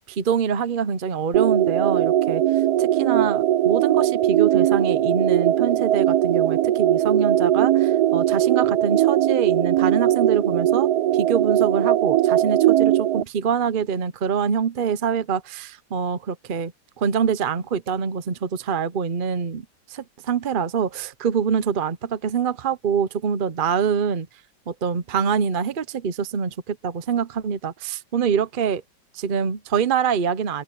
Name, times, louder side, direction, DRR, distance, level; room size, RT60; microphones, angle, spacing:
voice 1, 0.1-2.4 2.8-16.7 17.0-24.3 24.7-28.8 29.1-30.6, right 6 dB, 50° right, 0.6 m, -25 dB
sound 1, 1.3-13.2, right 12 dB, 65° right, 1.2 m, -20 dB
open air
omnidirectional pair, 1.9 m